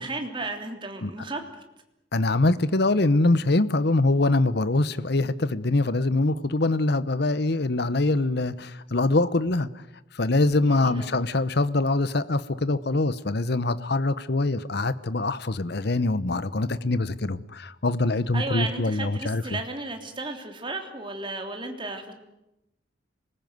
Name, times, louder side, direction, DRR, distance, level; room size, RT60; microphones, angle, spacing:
voice 1, 0.0-1.6 10.7-11.2 18.3-22.1, right 3 dB, 25° right, 3.2 m, -34 dB
voice 2, 2.1-9.8 10.1-19.6, left 2 dB, 55° left, 0.9 m, -24 dB
26.5 x 20.5 x 9.4 m
head